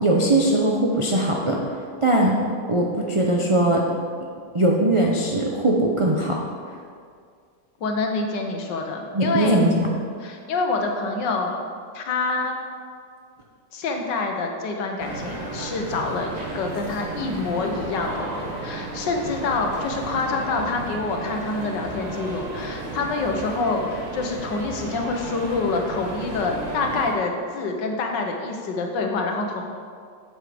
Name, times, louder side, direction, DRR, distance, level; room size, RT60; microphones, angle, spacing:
voice 1, 0.0-1.6 2.0-2.4 2.7-3.8 4.5-6.4 9.1-9.7, right 1 dB, 55° right, -2 dB, 0.3 m, -20 dB
voice 2, 7.8-9.6 10.2-11.5 11.9-12.6 13.7-29.6, left 3 dB, 85° left, 3 dB, 1.7 m, -26 dB
sound 1, 15.0-27.1, right 2 dB, 25° right, 1.3 m, -33 dB
8.2 x 7.3 x 5.1 m, 2.2 s
omnidirectional pair, 1.9 m